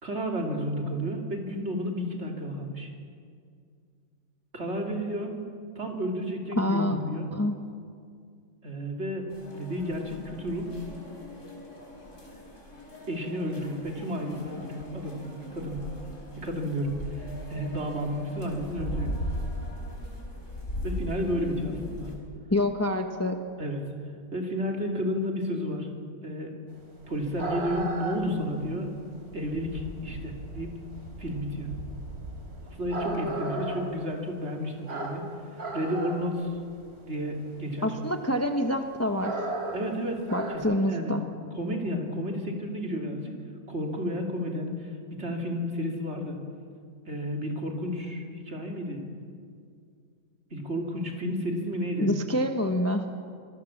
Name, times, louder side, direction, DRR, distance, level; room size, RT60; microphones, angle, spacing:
voice 1, 0.0-2.9 4.5-5.3 5.8-7.3 8.6-10.7 13.1-15.2 15.5-15.8 16.4-19.1 20.8-22.1 23.6-23.8 24.3-25.9 26.2-26.5 27.1-29.0 29.3-30.7 31.2-31.7 32.7-35.2 35.7-36.6 37.0-38.0 39.7-40.2 40.5-41.3 41.5-43.4 43.7-46.4 47.1-49.0 50.5-52.1, equal, 45° right, 1 dB, 3.4 m, -32 dB
voice 2, 6.6-7.0 7.3-7.5 22.5-23.4 37.8-39.3 40.3-41.2 52.0-53.0, left 1 dB, 10° left, 5 dB, 1.0 m, -26 dB
sound 1, 9.3-22.2, equal, 55° left, 5.4 m, -39 dB
sound 2, 26.8-40.6, right 2 dB, 75° right, 4.3 m, -36 dB
26.0 x 21.5 x 7.3 m, 2.2 s
omnidirectional pair, 1.6 m